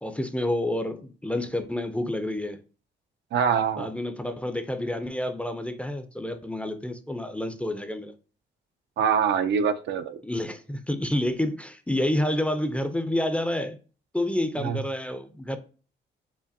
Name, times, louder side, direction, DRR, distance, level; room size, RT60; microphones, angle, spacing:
voice 1, 0.0-2.6 3.8-8.1 10.2-13.8 14.1-15.6, left 1 dB, 5° left, 0.5 m, -29 dB
voice 2, 3.3-3.9 9.0-10.2 14.6-14.8, right 7 dB, 65° right, 0.5 m, -24 dB
4.9 x 2.5 x 2.7 m
cardioid pair, 90°, 20 cm